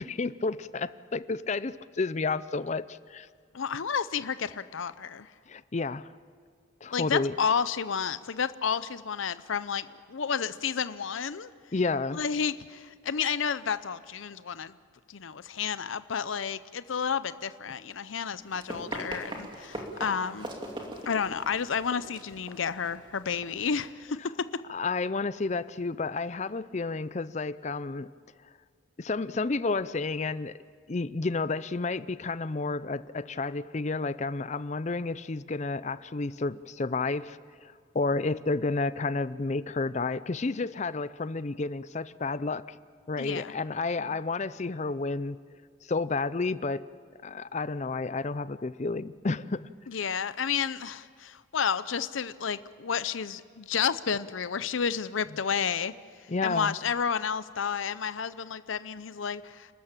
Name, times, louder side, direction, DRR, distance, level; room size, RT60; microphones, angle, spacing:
voice 1, 0.0-3.3 5.5-6.1 6.8-7.3 11.7-12.2 24.7-28.1 29.0-30.5 30.9-42.8 43.1-45.4 45.9-46.8 47.2-49.7 56.3-56.8, left 3 dB, 35° left, 16 dB, 0.5 m, -31 dB
voice 2, 3.5-5.3 6.9-11.5 12.1-14.7 15.1-20.5 21.1-24.5 43.2-43.5 44.1-44.2 49.9-55.9 56.4-59.7, left 6 dB, 80° left, 14 dB, 0.6 m, -31 dB
Run, 18.4-23.9, right 1 dB, 25° right, 2.6 m, -41 dB
29.5 x 13.5 x 8.8 m, 2.1 s
head